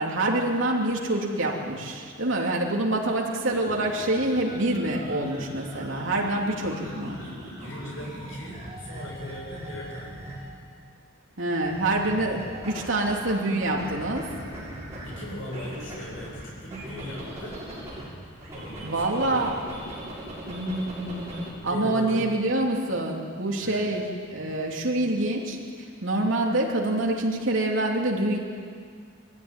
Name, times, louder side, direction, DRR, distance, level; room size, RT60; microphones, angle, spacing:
voice 1, 0.0-7.2 11.4-14.2 18.8-19.5 20.5-21.4 21.6-24.0 24.3-25.6 26.0-28.4, right 1 dB, 65° right, -1 dB, 3.1 m, -26 dB
sound 1, 3.4-10.6 11.6-13.3 13.6-18.0 18.4-21.5, right 1 dB, 15° right, 7.2 m, -40 dB
voice 2, 6.8-10.2 15.0-17.6 18.5-19.5 21.6-22.3 23.6-23.9, left 1 dB, 65° left, -4 dB, 7.8 m, -39 dB
21.5 x 15.0 x 10.0 m, 2.1 s
head